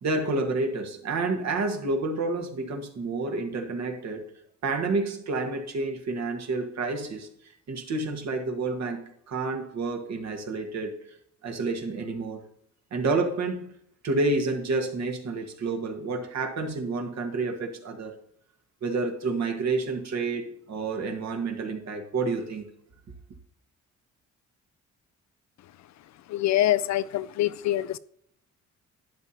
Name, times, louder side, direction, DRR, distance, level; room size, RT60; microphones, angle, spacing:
voice 1, 0.0-4.3 4.6-7.3 7.7-10.9 11.4-12.4 12.9-13.7 14.0-18.1 18.8-22.7, right 3 dB, 60° right, 1.6 m, -29 dB
voice 2, 26.3-28.0, left 13 dB, 65° left, 0.5 m, -25 dB
11.5 x 8.5 x 2.9 m
cardioid pair, 90°, 30 cm